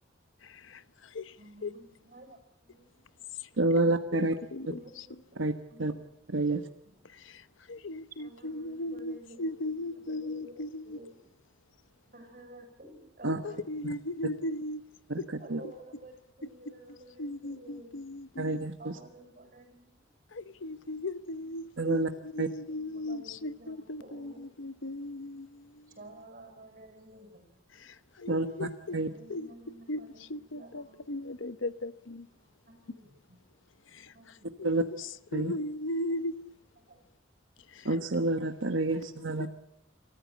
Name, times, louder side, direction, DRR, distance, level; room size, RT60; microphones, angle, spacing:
voice 1, 0.4-1.4 1.6-1.7 3.4-3.5 4.1-5.0 7.1-11.0 13.4-14.8 15.2-15.3 17.2-18.6 20.3-25.9 27.7-29.0 29.3-29.5 29.9-32.3 33.9-34.1 34.6-36.4 37.7-37.9 38.9-39.5, left 1 dB, 75° left, 0.9 m, -38 dB
voice 2, 1.4-3.0 4.6-6.0 6.5-7.0 8.2-11.2 12.1-13.6 15.4-18.0 18.8-20.0 22.7-24.5 25.9-27.6 28.9-31.0 32.4-33.2 34.1-34.5 35.4-35.6 36.1-36.2 36.8-37.0, right 1 dB, 45° right, 6.4 m, -52 dB
voice 3, 3.6-4.3 5.4-5.5 5.8-5.9 6.3-6.6 13.2-13.4 15.1-15.2 15.5-15.6 18.4-18.7 21.8-22.1 22.4-22.5 28.3-29.1 34.6-34.8 35.3-35.5 37.8-39.5, right 2 dB, 75° right, 1.2 m, -28 dB
27.0 x 14.5 x 8.6 m
head